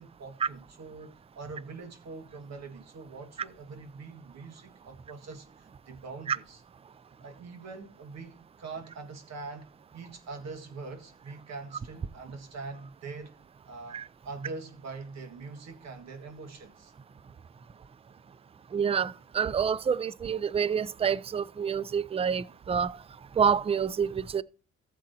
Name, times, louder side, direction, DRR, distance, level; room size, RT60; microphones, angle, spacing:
voice 1, 0.0-6.6 7.2-13.4 13.7-16.9, right 4 dB, 60° right, 1.9 m, -43 dB
voice 2, 18.7-22.9 23.4-24.4, right 7 dB, 20° right, 0.4 m, -27 dB
14.0 x 7.6 x 2.8 m
cardioid pair, 90°, 30 cm